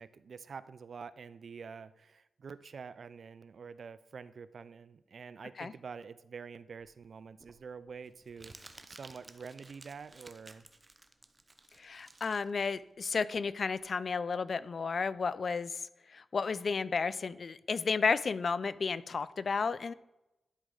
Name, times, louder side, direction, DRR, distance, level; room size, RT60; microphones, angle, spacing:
voice 1, 0.0-10.6, right 5 dB, 65° right, 16 dB, 0.4 m, -47 dB
Crumpling crinkling, 6.8-13.9, right 2 dB, 30° right, 0.7 m, -56 dB
voice 2, 11.8-15.8 16.1-19.9, left 5 dB, 55° left, 17 dB, 0.3 m, -32 dB
11.5 x 5.0 x 3.8 m, 0.94 s
cardioid pair, 75°, 0 cm